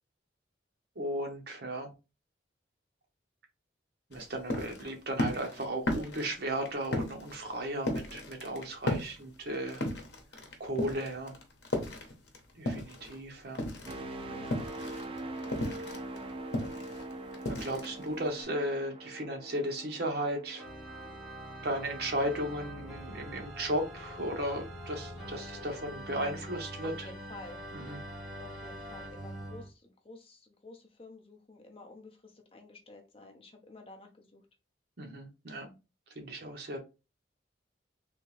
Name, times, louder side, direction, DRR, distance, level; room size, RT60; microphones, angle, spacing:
voice 1, 1.0-1.9 4.1-9.9 10.6-11.3 12.6-13.6 17.5-20.6 21.6-27.1 27.7-28.0 35.0-35.7 36.1-36.8, right 1 dB, 55° right, 0.9 m, -35 dB
sound 1, 4.1-13.2 13.5-18.4, left 1 dB, 65° left, 0.9 m, -35 dB
sound 2, 13.9-21.7 22.1-22.4, right 2 dB, 30° right, 0.4 m, -43 dB
Organ, 20.6-29.7, equal, ahead, 1.0 m, -44 dB
voice 2, 26.8-27.6 28.4-34.4, left 2 dB, 30° left, 0.7 m, -51 dB
3.4 x 2.9 x 3.2 m
head